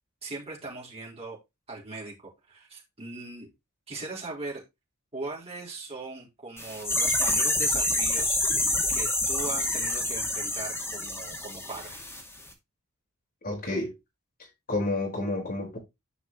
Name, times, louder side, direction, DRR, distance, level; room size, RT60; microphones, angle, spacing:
voice 1, 0.2-1.4 1.7-3.5 3.9-4.6 5.1-12.0, right 3 dB, 30° right, 4.2 m, -39 dB
sound 1, 6.6-12.2 12.5-12.6, left 1 dB, 10° left, 2.2 m, -27 dB
voice 2, 13.4-13.9 14.7-15.8, left 2 dB, 45° left, 4.8 m, -29 dB
10.0 x 6.1 x 3.1 m
head